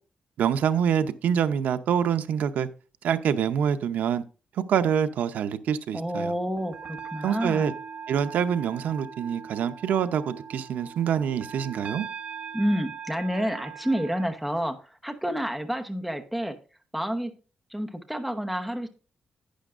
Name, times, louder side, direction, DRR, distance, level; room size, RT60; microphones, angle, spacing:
voice 1, 0.4-2.7 3.0-4.2 4.7-6.3 7.2-7.7 8.1-12.1, right 8 dB, 90° right, 0.7 m, -26 dB
voice 2, 5.9-7.7 12.5-14.8 15.0-16.5 16.9-17.3 17.7-18.9, equal, ahead, 1.0 m, -29 dB
sound 1, 6.4-14.3, right 6 dB, 50° right, 1.1 m, -40 dB
11.5 x 9.2 x 2.5 m
wide cardioid pair, 160°, 3 cm